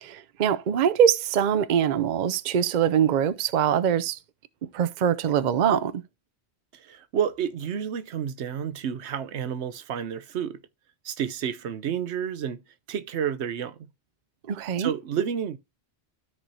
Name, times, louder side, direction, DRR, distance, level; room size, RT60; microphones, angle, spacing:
voice 1, 0.0-4.2 4.6-6.0 14.5-14.9, right 8 dB, 50° right, 0.6 m, -23 dB
voice 2, 6.7-10.6 11.0-12.6 12.9-13.8 14.8-15.6, right 8 dB, 85° right, 1.0 m, -30 dB
13.0 x 4.8 x 2.7 m
omnidirectional pair, 1.1 m